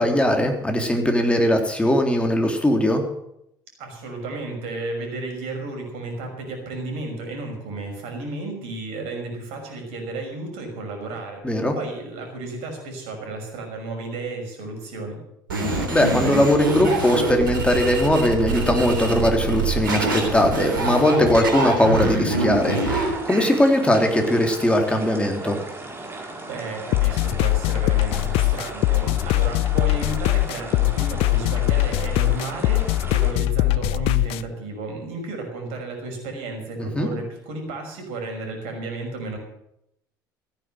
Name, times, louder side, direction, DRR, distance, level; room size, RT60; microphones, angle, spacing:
voice 1, 0.0-3.0 11.4-11.8 15.9-25.6 36.8-37.1, left 1 dB, 10° left, 3 dB, 3.5 m, -20 dB
voice 2, 3.8-15.2 26.5-39.4, right 2 dB, 65° right, 3 dB, 6.0 m, -33 dB
sound 1, 15.5-23.6, right 3 dB, 85° right, 3.6 m, -25 dB
sound 2, 22.5-33.3, right 2 dB, 20° right, 4.8 m, -36 dB
sound 3, 26.9-34.4, left 19 dB, 60° left, 0.5 m, -21 dB
15.0 x 10.0 x 7.8 m, 0.79 s
hypercardioid pair, 65°, 11 cm